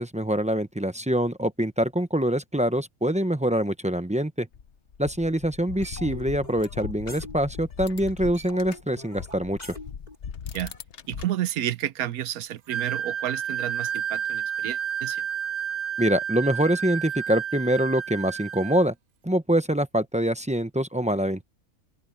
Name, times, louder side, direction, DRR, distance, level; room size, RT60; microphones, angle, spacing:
voice 1, 0.0-4.5 5.0-9.6 16.0-18.9 19.2-21.4, right 1 dB, 5° right, 0.6 m, -25 dB
sound 1, 4.5-8.8 9.1-11.2, left 7 dB, 55° left, 1.1 m, -39 dB
sound 2, 5.8-7.8 8.0-10.8, left 1 dB, 30° left, 5.6 m, -44 dB
voice 2, 11.1-15.2, right 12 dB, 85° right, 1.3 m, -31 dB
Wind instrument woodwind instrument, 12.7-18.8, right 8 dB, 60° right, 0.5 m, -31 dB
open air
omnidirectional pair, 1.5 m